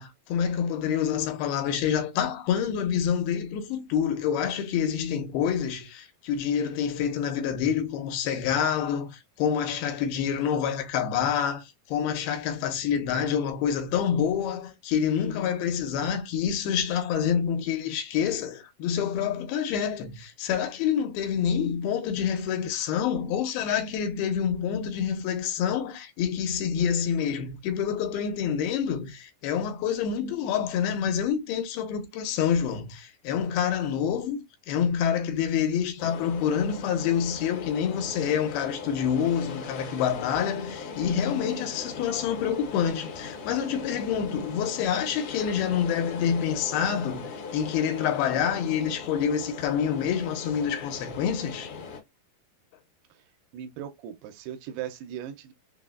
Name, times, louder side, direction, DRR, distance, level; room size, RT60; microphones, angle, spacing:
voice 1, 0.0-34.4 34.7-51.7, left 8 dB, 85° left, 2.6 m, -27 dB
sound 1, 36.0-52.0, left 5 dB, 65° left, 2.2 m, -39 dB
voice 2, 53.5-55.5, right 10 dB, 90° right, 2.6 m, -38 dB
6.0 x 2.0 x 2.4 m
omnidirectional pair, 4.4 m